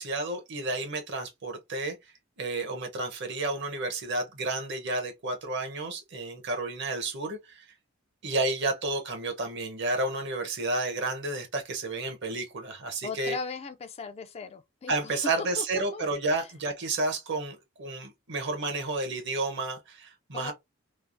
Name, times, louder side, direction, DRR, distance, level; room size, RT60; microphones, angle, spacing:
voice 1, 0.0-2.0 2.4-7.6 8.2-13.4 14.9-20.5, right 2 dB, 60° right, 0.9 m, -31 dB
voice 2, 13.0-15.3 15.6-15.7 15.9-16.0 16.3-16.5 20.3-20.5, left 4 dB, 30° left, 0.3 m, -38 dB
3.2 x 2.0 x 2.5 m
head